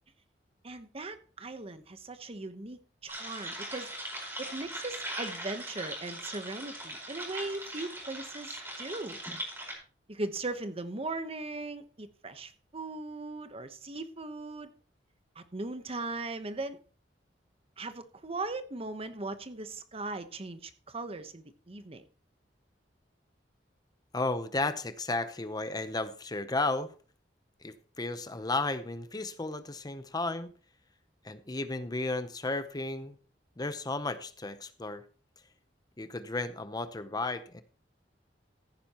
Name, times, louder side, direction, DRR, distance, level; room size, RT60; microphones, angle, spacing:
voice 1, 0.6-3.9 4.4-9.2 10.1-14.7 15.3-16.8 17.8-22.0, right 2 dB, 35° right, 1.0 m, -39 dB
sound 1, 3.1-9.7, right 1 dB, 15° right, 4.8 m, -40 dB
voice 2, 24.1-26.9 27.6-30.5 31.2-33.2 33.6-35.0 36.0-37.6, left 2 dB, 20° left, 0.7 m, -33 dB
15.0 x 10.0 x 3.0 m
head